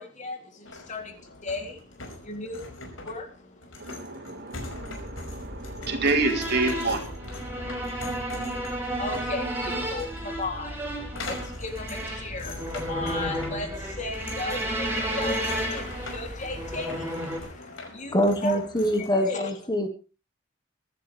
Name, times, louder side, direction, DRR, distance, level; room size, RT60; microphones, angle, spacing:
voice 1, 0.0-4.0 8.7-18.1 18.4-18.6 19.0-19.4, left 3 dB, 40° left, 3.2 m, -36 dB
sound 1, 0.7-19.1, left 2 dB, 85° left, 5.5 m, -43 dB
voice 2, 3.8-7.8, right 3 dB, 55° right, 3.6 m, -29 dB
sound 2, 4.5-16.8, equal, 35° right, 1.6 m, -41 dB
sound 3, 6.2-17.4, right 1 dB, 10° right, 5.2 m, -33 dB
voice 3, 18.1-19.9, equal, 20° left, 1.5 m, -24 dB
24.0 x 12.0 x 3.5 m
head